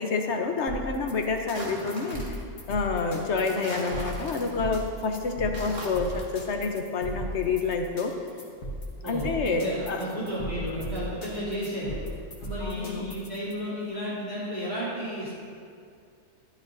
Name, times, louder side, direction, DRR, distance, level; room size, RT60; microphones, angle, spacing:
voice 1, 0.0-2.3 2.7-8.1 9.0-10.0 12.6-13.1, left 4 dB, 60° left, 4 dB, 1.1 m, -28 dB
sound 1, 0.7-13.5, equal, 85° left, 1.9 m, -37 dB
sound 2, 1.5-2.5 3.4-4.7 5.4-6.3, right 1 dB, 65° right, 2.5 m, -39 dB
voice 2, 9.0-12.0 12.4-15.3, equal, 30° right, -11 dB, 3.2 m, -33 dB
13.0 x 12.5 x 2.7 m, 2.3 s
omnidirectional pair, 1.4 m